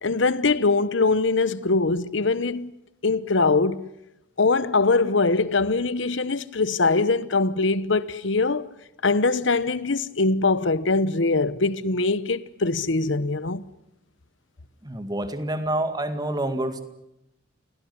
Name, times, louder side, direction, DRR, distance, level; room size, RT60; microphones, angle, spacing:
voice 1, 0.0-2.7 3.0-3.9 4.4-8.7 9.0-13.6, left 3 dB, 65° left, 1.0 m, -22 dB
voice 2, 14.8-16.8, right 1 dB, 20° right, 2.1 m, -27 dB
28.0 x 17.5 x 9.6 m
head